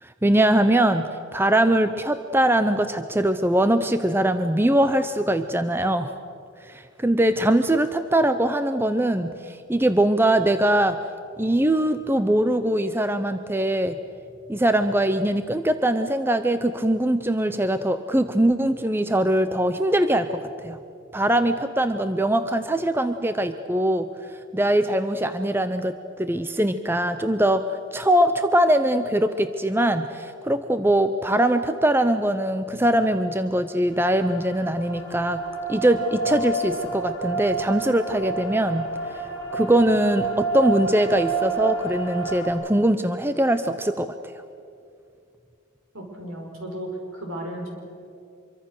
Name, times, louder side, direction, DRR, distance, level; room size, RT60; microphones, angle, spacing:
voice 1, 0.0-6.1 6.6-11.0 11.4-14.0 14.5-20.8 21.1-24.1 24.5-35.4 35.7-38.9 39.5-44.3, right 1 dB, 10° right, 10 dB, 0.6 m, -22 dB
sound 1, 33.9-42.5, right 3 dB, 20° left, 4.8 m, -30 dB
voice 2, 45.9-47.8, right 1 dB, 75° right, 2 dB, 5.4 m, -34 dB
25.5 x 23.5 x 6.6 m, 2.5 s
head